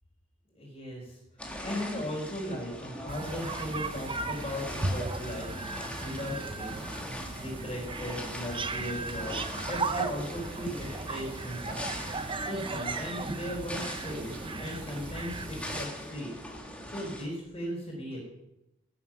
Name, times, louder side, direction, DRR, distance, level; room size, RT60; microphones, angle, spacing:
voice 1, 0.5-1.2 1.6-7.1 7.4-11.9 12.2-16.3 16.9-18.2, equal, 30° left, -5 dB, 3.9 m, -37 dB
sound 1, 1.4-17.2, equal, 5° left, 1.9 m, -41 dB
sound 2, 3.1-15.9, right 3 dB, 25° right, 0.8 m, -36 dB
16.5 x 7.8 x 6.0 m, 0.90 s
head